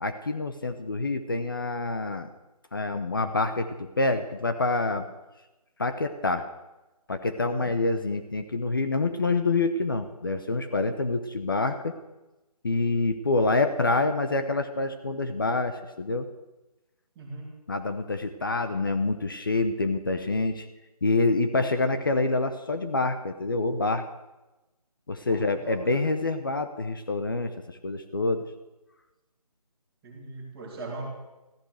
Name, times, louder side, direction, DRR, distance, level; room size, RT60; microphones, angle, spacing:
voice 1, 0.0-2.3 2.7-5.1 5.8-6.5 7.1-12.0 12.6-16.3 17.7-20.7 21.0-24.1 25.1-28.4, left 3 dB, 35° left, 8 dB, 0.9 m, -27 dB
voice 2, 7.4-7.8 17.2-17.5 25.2-26.0 30.0-31.1, right 2 dB, 5° right, -5 dB, 2.3 m, -40 dB
14.5 x 13.5 x 6.4 m, 1.0 s
figure-of-eight pair, 175°, 20 cm